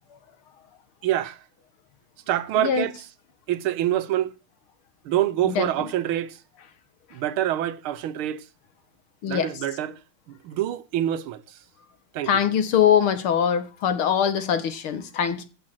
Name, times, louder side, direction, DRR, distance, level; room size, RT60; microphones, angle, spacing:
voice 1, 1.0-1.4 2.3-2.9 3.5-4.3 5.0-6.4 7.1-8.5 9.3-10.0 10.3-11.6 12.1-12.3, right 12 dB, 85° right, 1.7 m, -26 dB
voice 2, 12.3-15.4, left 8 dB, 85° left, 2.3 m, -22 dB
15.0 x 6.1 x 7.7 m
omnidirectional pair, 2.3 m